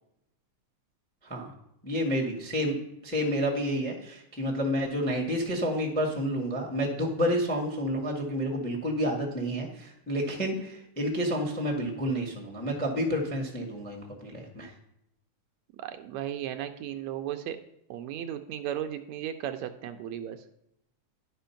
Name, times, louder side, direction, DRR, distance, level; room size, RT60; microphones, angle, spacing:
voice 1, 1.8-2.8 3.0-14.7, equal, 5° left, 1 dB, 0.7 m, -29 dB
voice 2, 15.8-17.6 17.9-20.4, right 11 dB, 80° right, 7 dB, 1.7 m, -35 dB
11.0 x 5.2 x 5.7 m, 0.80 s
omnidirectional pair, 3.5 m